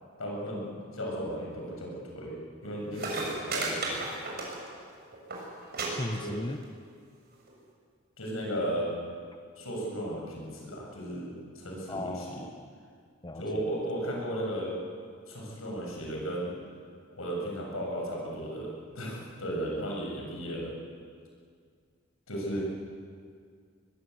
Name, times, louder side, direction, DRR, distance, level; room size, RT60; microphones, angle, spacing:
voice 1, 0.2-0.7 0.9-2.4 2.6-4.0 6.2-6.3 8.2-8.9 9.6-12.4 13.4-14.8 15.3-16.5 17.2-20.7 22.3-22.6, equal, 80° left, -2 dB, 7.8 m, -35 dB
sound 1, 2.6-2.7 2.9-4.9 5.1-5.4 5.7-5.9 6.1-6.6 7.5-7.6, right 3 dB, 50° right, 6.5 m, -33 dB
voice 2, 6.0-6.6 11.9-12.7 13.2-13.4, left 1 dB, 20° left, 7 dB, 0.9 m, -36 dB
23.0 x 21.5 x 8.3 m, 2.2 s
head